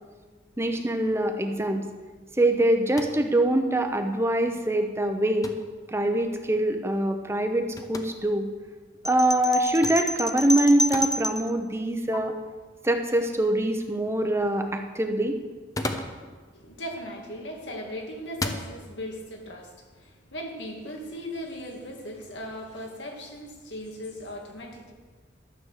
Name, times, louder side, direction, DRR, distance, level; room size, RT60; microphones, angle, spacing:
voice 1, 0.6-1.8 2.4-5.5 5.9-8.4 9.0-12.3 12.8-15.4, right 1 dB, 15° right, 5 dB, 0.8 m, -24 dB
sound 1, 2.9-3.3 5.4-5.7 7.8-8.1 9.8-10.1 10.9-11.1 12.1-12.2 15.5-16.2 17.4-17.7 18.3-18.7, left 2 dB, 20° left, 0.8 m, -33 dB
sound 2, 9.0-11.5, equal, ahead, 0.3 m, -29 dB
voice 2, 16.5-24.9, equal, 90° left, 1 dB, 2.2 m, -38 dB
13.0 x 8.2 x 6.5 m, 1.4 s
head